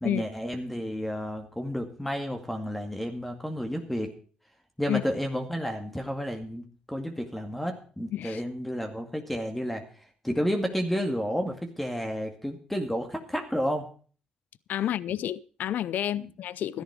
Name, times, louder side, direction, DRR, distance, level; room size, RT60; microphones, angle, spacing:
voice 1, 0.0-4.1 4.8-13.9, equal, 5° left, 2.1 m, -31 dB
voice 2, 14.7-16.8, left 11 dB, 70° left, 0.5 m, -30 dB
13.0 x 10.5 x 4.8 m
cardioid pair, 80°, 3 cm